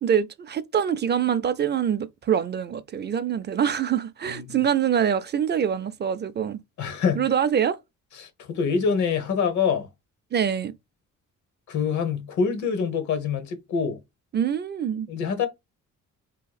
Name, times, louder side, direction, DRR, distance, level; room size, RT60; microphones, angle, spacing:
voice 1, 0.0-6.6 7.2-7.8 10.3-10.7 14.3-15.1, right 8 dB, 35° right, 0.4 m, -24 dB
voice 2, 6.8-7.2 8.2-9.9 11.7-14.0 15.1-15.5, left 6 dB, 70° left, 1.0 m, -25 dB
2.9 x 2.3 x 4.0 m
cardioid pair, 90°, 30 cm